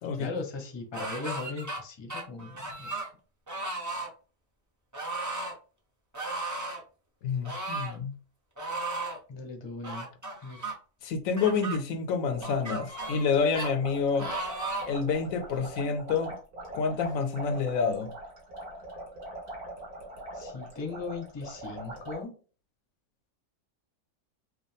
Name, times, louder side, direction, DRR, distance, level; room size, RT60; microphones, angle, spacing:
voice 1, 0.1-2.9 9.3-10.1 10.4-10.6 20.3-22.3, left 3 dB, 25° left, 0.7 m, -38 dB
sound 1, 0.9-1.8 2.1-3.1 3.5-4.1 4.9-5.5 6.1-6.8 7.4-8.0 8.6-9.2 9.8-10.7 11.4-11.8 12.4-13.3 13.5-13.7 14.2-15.0 15.5-15.6, right 2 dB, 20° right, 0.6 m, -35 dB
voice 2, 7.2-8.1 11.0-14.3 14.9-16.4 16.7-18.1, left 5 dB, 70° left, 0.9 m, -28 dB
sound 2, 12.3-22.2, right 1 dB, 80° right, 2.3 m, -42 dB
4.9 x 2.2 x 3.3 m
omnidirectional pair, 1.6 m